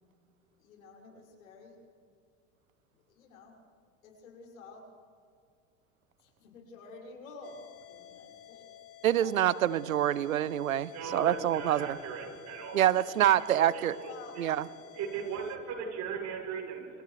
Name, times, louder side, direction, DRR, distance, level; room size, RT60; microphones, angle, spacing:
voice 1, 0.6-1.8 3.1-3.6 4.0-4.8 6.2-8.7 9.2-9.4 14.0-14.4, left 3 dB, 75° left, -1 dB, 6.3 m, -50 dB
sound 1, 7.4-15.6, left 11 dB, 35° left, 1.7 m, -52 dB
voice 2, 9.0-12.0 12.7-14.0 14.4-14.6, right 11 dB, 90° right, 19 dB, 0.7 m, -26 dB
voice 3, 10.9-14.1 14.9-17.0, right 6 dB, 45° right, 1 dB, 7.0 m, -38 dB
28.0 x 28.0 x 3.3 m, 2.4 s
hypercardioid pair, 90°, 40 cm